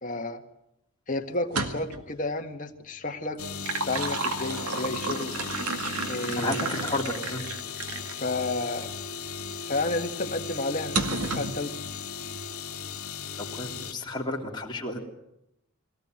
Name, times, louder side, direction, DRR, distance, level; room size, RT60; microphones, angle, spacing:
voice 1, 0.0-0.4 1.1-3.4 3.9-5.3 6.1-6.6 8.2-8.9 9.7-11.7, left 2 dB, 35° left, 4 dB, 1.7 m, -31 dB
sound 1, 1.4-2.1 3.3-8.2 8.8-8.9 10.9-11.6, right 3 dB, 85° right, 2.2 m, -32 dB
sound 2, 3.4-13.9, left 6 dB, 75° left, 1.6 m, -37 dB
voice 2, 6.3-7.4 13.4-15.0, left 1 dB, 20° left, -2 dB, 3.2 m, -32 dB
23.0 x 18.0 x 9.2 m, 0.86 s
head